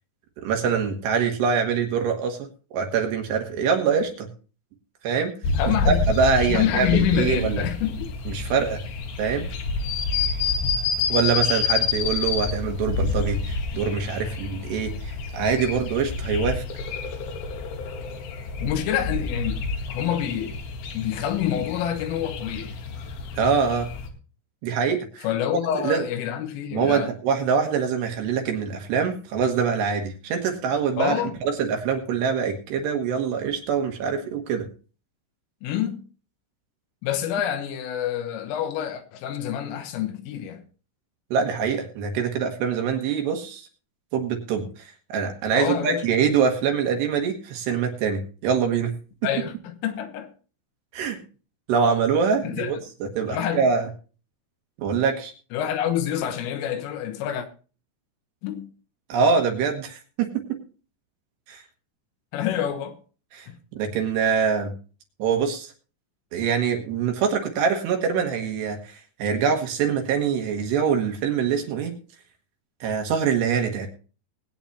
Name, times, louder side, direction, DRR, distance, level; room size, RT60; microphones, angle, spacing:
voice 1, 0.4-2.4 2.7-4.3 5.0-5.3 6.1-7.6 8.3-8.8 9.2-9.5 11.1-16.6 23.3-23.9 24.6-25.3 25.7-26.0 26.7-34.7 41.3-43.7 44.1-48.9 50.9-51.2 51.7-53.9 54.8-55.3 59.1-60.3 61.5-61.6 63.3-64.7 65.2-65.7 66.3-71.9 72.8-73.9, right 6 dB, 70° right, 3.2 m, -24 dB
sound 1, 5.4-24.1, left 4 dB, 65° left, 2.7 m, -28 dB
voice 2, 5.5-6.0 6.5-8.1 18.6-19.6 19.9-20.6 20.9-22.7 25.2-27.2 31.0-31.4 35.6-36.0 37.0-40.6 45.5-46.1 49.2-50.3 52.4-52.7 53.3-53.6 55.5-57.5 58.4-58.7 62.3-63.0 63.5-63.6, left 10 dB, 85° left, 3.7 m, -27 dB
21.5 x 9.0 x 2.7 m
omnidirectional pair, 5.8 m